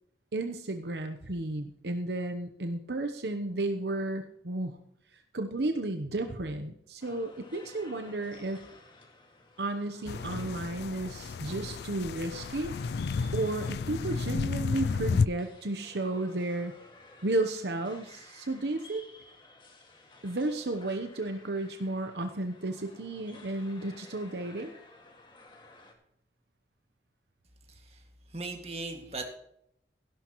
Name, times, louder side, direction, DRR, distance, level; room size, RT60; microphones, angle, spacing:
voice 1, 0.3-4.8 5.1-8.6 9.6-12.7 13.3-16.7 17.2-19.1 20.2-24.7, right 2 dB, 75° right, 6 dB, 0.9 m, -33 dB
sound 1, 7.0-25.9, left 3 dB, 25° left, 2.0 m, -55 dB
sound 2, 10.1-15.3, left 5 dB, 70° left, 0.3 m, -32 dB
voice 2, 27.7-28.0 28.3-29.3, right 3 dB, 35° right, 3 dB, 2.1 m, -38 dB
16.0 x 11.5 x 3.1 m, 0.73 s
head